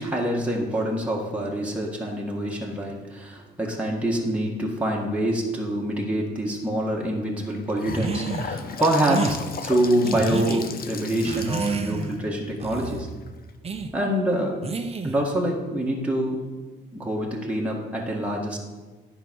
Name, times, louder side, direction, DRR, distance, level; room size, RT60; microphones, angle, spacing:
voice 1, 0.0-13.1 13.9-14.7 15.0-16.4 16.9-18.6, right 1 dB, 5° right, -3 dB, 1.7 m, -26 dB
Gurgling / Sink (filling or washing) / Bathtub (filling or washing), 7.4-13.5, left 5 dB, 50° left, 0.8 m, -36 dB
sound 1, 7.9-8.5 9.0-9.4 10.0-10.6 11.2-12.2 12.6-13.0 13.6-13.9 14.6-15.3, right 4 dB, 30° right, 0.9 m, -29 dB
10.0 x 4.9 x 6.4 m, 1.3 s
cardioid pair, 90°, 20 cm